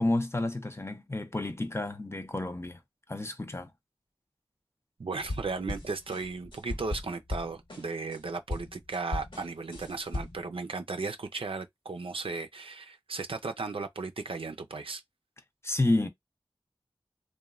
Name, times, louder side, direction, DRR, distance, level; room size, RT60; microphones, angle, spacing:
voice 1, 0.0-2.8 3.1-3.7 15.6-16.1, left 2 dB, 25° left, 0.5 m, -30 dB
voice 2, 5.0-15.0, right 4 dB, 70° right, 0.5 m, -36 dB
sound 1, 5.2-8.2 8.5-10.5, left 1 dB, 60° left, 1.2 m, -37 dB
3.0 x 2.2 x 2.3 m
wide cardioid pair, 60°, 10 cm